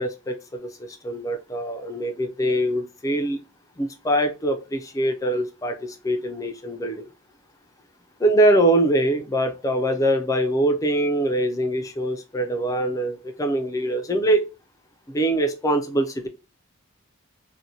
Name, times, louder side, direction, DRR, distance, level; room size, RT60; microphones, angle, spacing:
voice 1, 0.0-3.4 3.8-7.1 8.2-14.4 15.1-16.3, right 1 dB, 15° left, 6 dB, 0.3 m, -23 dB
2.6 x 2.1 x 2.7 m, 0.30 s
head